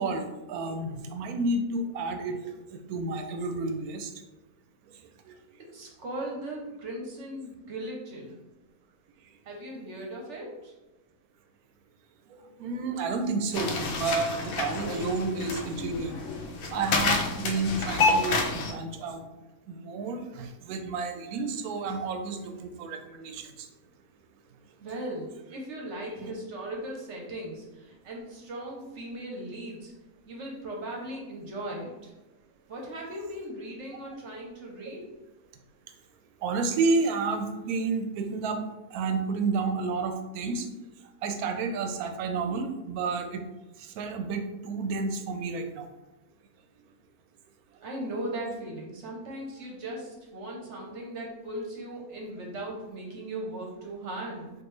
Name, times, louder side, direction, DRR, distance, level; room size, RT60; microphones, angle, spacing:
voice 1, 0.0-2.5 2.9-4.1 12.3-16.2 16.7-19.2 19.7-23.7 26.2-26.3 36.4-38.6 38.9-40.7 41.2-43.4 43.8-45.9, right 3 dB, 80° right, 6 dB, 1.0 m, -30 dB
voice 2, 5.6-8.4 9.4-10.7 24.8-29.9 30.3-32.1 32.7-35.1 47.8-54.5, right 1 dB, 60° right, -1 dB, 1.0 m, -38 dB
sound 1, 13.5-18.7, left 3 dB, 70° left, 1.0 m, -28 dB
4.5 x 2.6 x 3.1 m, 1.0 s
omnidirectional pair, 1.6 m